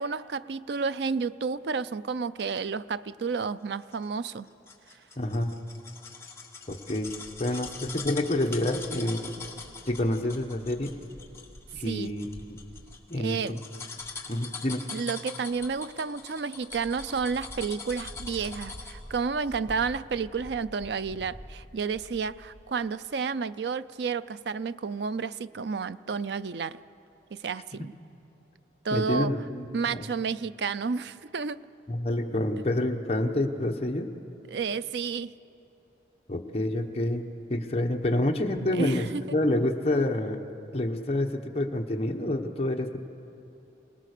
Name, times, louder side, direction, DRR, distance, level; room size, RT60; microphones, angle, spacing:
voice 1, 0.0-4.5 11.8-12.1 13.1-13.6 14.9-26.8 27.3-27.9 28.8-29.4 29.7-31.6 34.5-35.3 38.7-39.3, right 5 dB, 70° right, 15 dB, 0.4 m, -31 dB
sound 1, 3.9-19.1 19.5-19.6, left 5 dB, 15° left, 1.5 m, -42 dB
voice 2, 5.2-5.5 6.7-7.1 7.4-9.3 9.9-11.0 11.7-12.6 13.1-13.6 14.3-14.8 28.9-30.0 31.9-34.1 36.3-40.4 40.7-43.0, left 1 dB, 35° left, 2 dB, 1.2 m, -28 dB
sound 2, 7.0-13.0 13.2-13.5 13.8-14.3 15.5-16.3 16.6-22.8, equal, 10° right, 1.8 m, -48 dB
27.5 x 19.0 x 6.7 m, 2.8 s
head